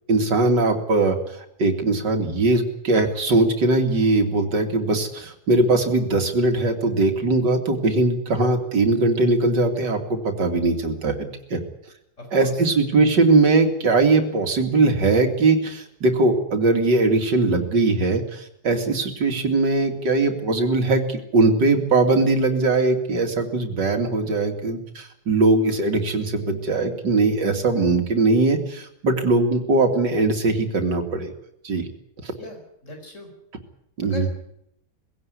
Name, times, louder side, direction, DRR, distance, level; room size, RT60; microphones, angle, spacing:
voice 1, 0.1-11.6 12.3-31.3 31.6-31.9 32.2-32.3 34.0-34.3, right 3 dB, 90° right, 5 dB, 3.1 m, -20 dB
voice 2, 12.2-12.7 32.4-33.3 34.0-34.3, left 2 dB, 45° left, 3 dB, 4.9 m, -39 dB
20.0 x 17.0 x 9.8 m, 0.79 s
omnidirectional pair, 1.8 m